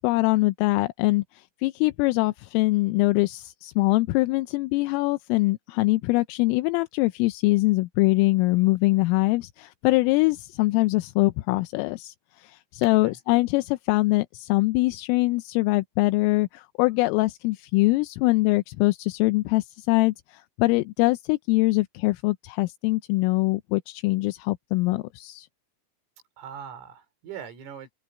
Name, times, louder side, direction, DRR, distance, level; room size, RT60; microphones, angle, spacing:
voice 1, 0.0-25.5, left 22 dB, 85° left, 3.2 m, -23 dB
voice 2, 12.9-13.2 26.4-27.9, right 8 dB, 80° right, 7.2 m, -41 dB
omnidirectional pair, 5.9 m